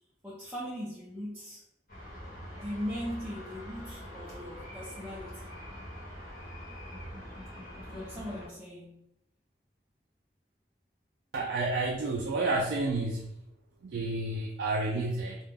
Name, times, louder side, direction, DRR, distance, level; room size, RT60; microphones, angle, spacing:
voice 1, 0.2-1.6 2.6-5.5 7.9-9.0, equal, 10° right, -7 dB, 0.4 m, -39 dB
sound 1, 1.9-8.5, equal, 50° left, 0.9 m, -44 dB
voice 2, 11.3-13.3 13.8-15.4, right 2 dB, 75° right, -1 dB, 0.3 m, -30 dB
2.3 x 2.0 x 3.3 m, 0.81 s
head